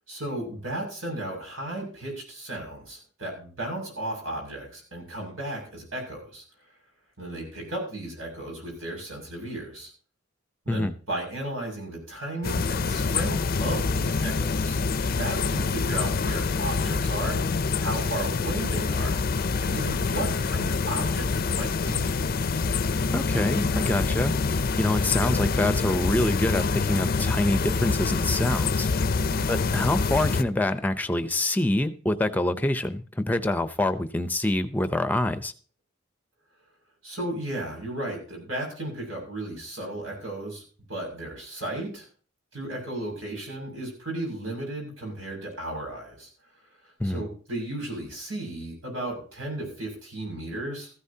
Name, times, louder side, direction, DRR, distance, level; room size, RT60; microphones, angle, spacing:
voice 1, 0.1-6.4 7.2-9.9 10.6-14.8 15.0-17.4 17.8-19.2 19.6-22.1 29.0-29.4 37.0-40.6 40.9-42.0 42.5-46.3 47.0-50.9, right 1 dB, 85° right, 6.4 m, -34 dB
sound 1, 12.4-30.4, left 4 dB, 45° left, 0.5 m, -26 dB
voice 2, 23.1-24.3 24.8-28.9 29.5-35.5 47.0-47.2, left 1 dB, 10° left, 0.7 m, -26 dB
14.5 x 13.5 x 2.8 m
head